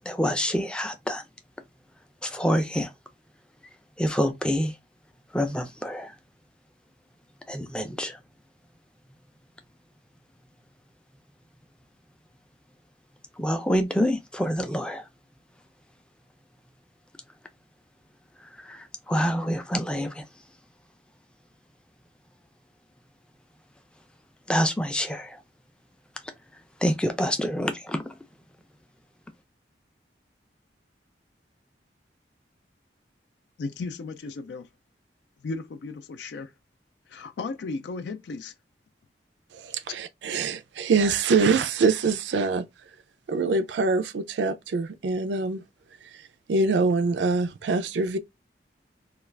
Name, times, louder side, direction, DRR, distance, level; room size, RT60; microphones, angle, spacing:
voice 1, 0.1-1.2 2.2-2.9 4.0-4.7 5.3-6.1 7.5-8.2 13.4-15.0 18.6-20.2 24.5-25.4 26.8-28.0, equal, 5° left, 0.4 m, -26 dB
voice 2, 33.6-34.7 35.4-36.5 37.1-38.5, left 3 dB, 75° left, 0.4 m, -35 dB
voice 3, 39.5-42.7 43.3-45.6 46.5-48.2, right 4 dB, 85° right, 0.4 m, -24 dB
2.3 x 2.3 x 3.2 m
head